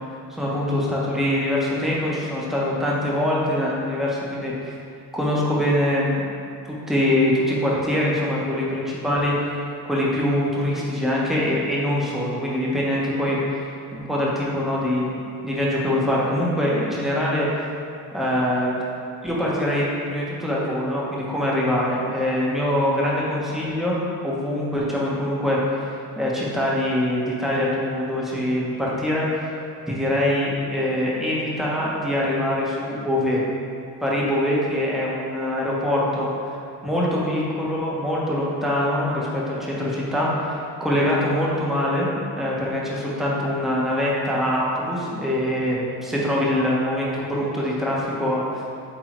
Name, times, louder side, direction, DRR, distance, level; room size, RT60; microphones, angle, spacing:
voice 1, 0.3-4.7 5.1-6.3 6.6-9.3 9.9-13.4 13.9-17.5 18.1-18.8 19.2-23.9 24.2-25.6 26.2-29.3 29.9-33.4 34.0-36.3 36.8-48.4, left 1 dB, ahead, -6 dB, 1.3 m, -23 dB
8.6 x 3.7 x 4.6 m, 2.5 s
cardioid pair, 140°, 35 cm